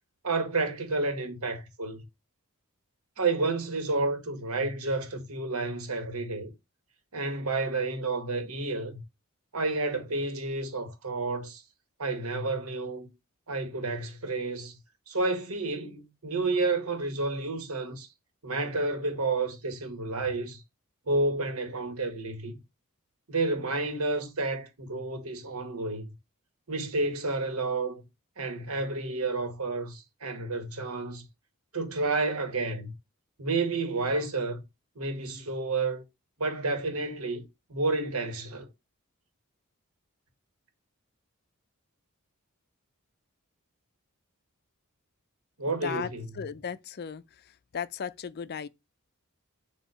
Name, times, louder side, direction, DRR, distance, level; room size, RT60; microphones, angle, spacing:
voice 1, 0.2-2.0 3.2-6.5 7.1-9.0 9.5-11.6 12.0-13.1 13.5-14.8 15.1-18.1 18.4-20.6 21.1-22.6 23.3-26.1 26.7-28.0 28.4-31.2 31.7-32.9 33.4-34.6 34.9-36.0 36.4-37.4 37.7-38.7 45.6-46.3, right 3 dB, 75° right, 1.7 m, -30 dB
voice 2, 45.7-46.1 46.4-47.2 47.7-48.7, left 7 dB, 50° left, 0.4 m, -35 dB
7.1 x 2.8 x 5.6 m
head